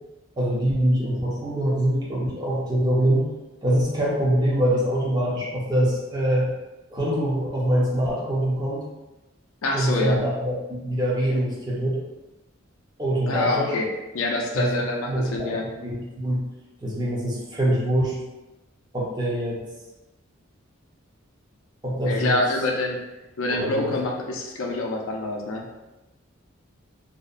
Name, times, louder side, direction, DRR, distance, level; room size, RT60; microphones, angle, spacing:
voice 1, 0.4-3.3 3.6-6.5 6.9-8.8 9.7-12.0 13.0-13.7 14.5-16.4 16.8-18.2 18.9-19.7 21.8-22.4 23.5-24.0, right 1 dB, 20° right, -5 dB, 0.5 m, -24 dB
voice 2, 9.6-10.2 13.3-13.9 14.1-15.7 22.0-23.0 23.4-25.6, left 2 dB, 75° left, 0 dB, 0.4 m, -26 dB
2.7 x 2.1 x 2.4 m, 1.0 s
head